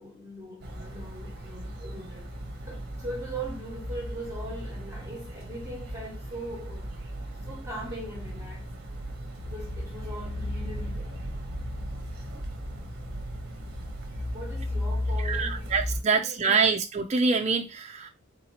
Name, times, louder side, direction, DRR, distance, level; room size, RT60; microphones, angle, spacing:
voice 1, 0.0-2.3 2.6-8.7 9.4-11.2 14.3-16.7, right 1 dB, 15° right, 1.1 m, -41 dB
sound 1, 0.6-16.0, equal, 45° right, 0.8 m, -35 dB
voice 2, 15.2-18.1, right 5 dB, 30° right, 0.4 m, -25 dB
3.8 x 2.8 x 2.8 m
head